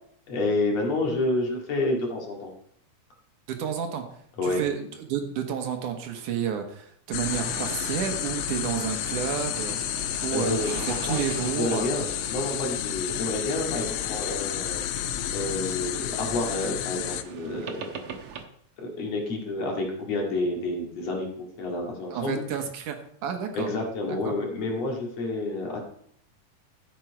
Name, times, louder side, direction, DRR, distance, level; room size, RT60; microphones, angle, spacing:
voice 1, 0.3-2.5 4.4-4.6 10.3-11.2 11.5-15.0 15.3-17.8 18.8-22.4 23.5-25.8, left 2 dB, 55° left, 0 dB, 3.2 m, -29 dB
voice 2, 3.5-4.0 4.4-9.8 10.2-11.9 22.1-23.0 23.2-23.7 24.1-24.3, right 8 dB, 80° right, 5 dB, 2.8 m, -30 dB
sound 1, 7.1-17.2, left 12 dB, 80° left, 1.9 m, -31 dB
sound 2, 7.2-18.4, right 6 dB, 60° right, 1.6 m, -42 dB
14.0 x 7.6 x 4.6 m, 0.65 s
omnidirectional pair, 3.6 m